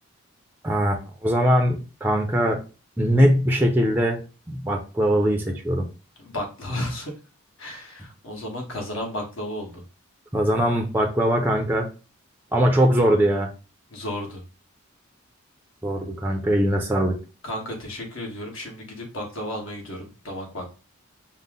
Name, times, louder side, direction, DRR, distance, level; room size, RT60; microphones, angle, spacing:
voice 1, 0.6-2.6 3.0-4.2 4.5-5.9 10.3-11.9 12.5-13.5 15.8-17.2, equal, 10° right, 2 dB, 0.5 m, -21 dB
voice 2, 6.2-7.1 7.6-9.8 13.9-14.4 17.4-20.7, left 1 dB, 65° left, 1 dB, 1.4 m, -33 dB
5.3 x 2.1 x 3.7 m, 0.33 s
head